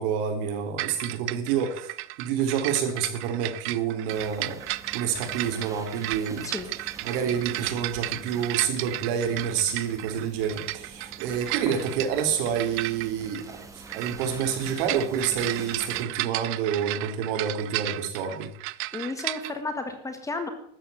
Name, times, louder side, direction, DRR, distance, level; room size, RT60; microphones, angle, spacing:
voice 1, 0.0-1.9 2.2-4.6 4.9-6.5 7.0-18.5, right 7 dB, 65° right, 5 dB, 3.9 m, -28 dB
sound 1, 0.8-19.5, right 20 dB, 45° right, 0.5 m, -34 dB
sound 2, 4.1-16.0, right 3 dB, 10° right, 1.7 m, -45 dB
voice 2, 18.9-20.5, left 3 dB, 10° left, 7 dB, 1.6 m, -32 dB
13.5 x 8.6 x 9.2 m, 0.67 s
supercardioid pair, 150°, 30 cm